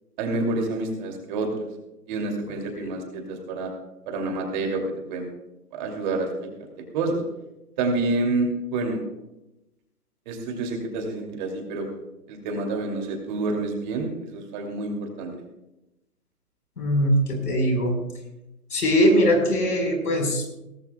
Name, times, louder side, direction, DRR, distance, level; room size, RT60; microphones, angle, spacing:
voice 1, 0.2-1.7 2.1-3.7 4.1-4.8 5.1-5.3 5.7-6.5 6.9-7.2 7.8-9.0 10.3-11.9 12.3-15.3, right 3 dB, 30° right, 2 dB, 2.7 m, -28 dB
voice 2, 16.8-18.0 18.7-20.6, equal, 75° left, 3 dB, 4.7 m, -21 dB
18.0 x 15.0 x 2.3 m, 0.93 s
hypercardioid pair, 145°, 46 cm